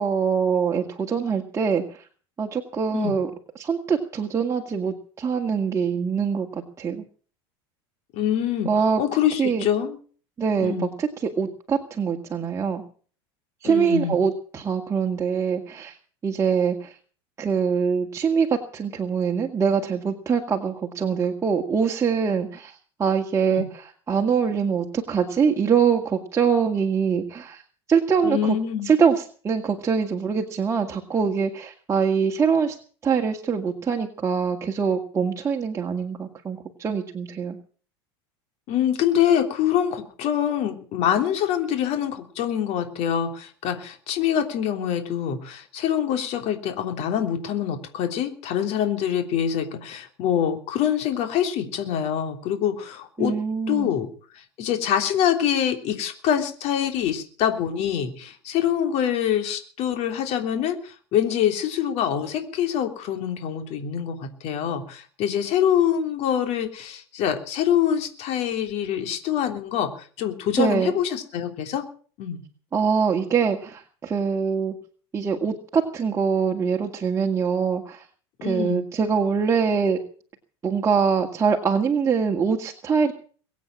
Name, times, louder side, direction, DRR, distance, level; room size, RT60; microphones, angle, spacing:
voice 1, 0.0-2.0 2.4-3.3 3.6-7.0 8.7-9.0 9.4-9.7 10.4-12.8 13.6-16.0 16.2-16.9 17.4-22.7 23.0-27.6 27.9-28.6 28.8-32.8 33.0-37.6 53.2-53.9 70.6-70.9 72.7-74.8 75.1-78.0 78.4-80.0 80.6-83.1, right 6 dB, 20° right, 1 dB, 2.0 m, -23 dB
voice 2, 8.1-8.7 9.0-10.0 10.6-10.9 13.6-14.2 23.5-23.7 28.2-28.9 38.7-53.3 53.7-54.1 54.3-71.8 72.2-72.4 78.4-78.9, left 9 dB, 50° left, 6 dB, 3.3 m, -25 dB
22.0 x 8.5 x 7.5 m, 0.43 s
supercardioid pair, 120°, 14 cm